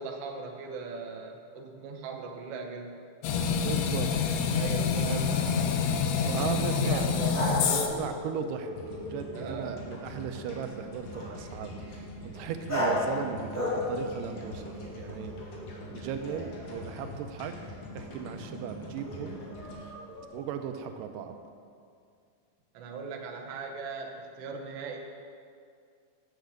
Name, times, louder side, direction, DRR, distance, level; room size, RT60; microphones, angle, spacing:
voice 1, 0.0-3.0 4.5-5.9 6.2-6.6 6.8-7.5 9.3-9.8 22.7-25.0, right 4 dB, 65° right, 2 dB, 1.6 m, -39 dB
sound 1, 3.2-8.1, left 6 dB, 75° left, 1.7 m, -27 dB
voice 2, 3.6-4.1 4.9-5.5 6.3-7.1 7.5-8.8 9.1-15.3 15.9-17.5 17.9-19.4 19.8-19.9 20.3-21.4, right 8 dB, 90° right, 7 dB, 2.3 m, -37 dB
sound 2, 5.4-5.6 7.3-9.6 11.1-11.3 12.7-13.1 13.5-14.1 14.4-17.2 18.1-18.3 19.0-20.2, left 1 dB, 5° left, 1.8 m, -35 dB
sound 3, 8.8-21.0, left 1 dB, 55° left, 2.5 m, -44 dB
7.2 x 7.2 x 7.7 m, 2.3 s
omnidirectional pair, 3.7 m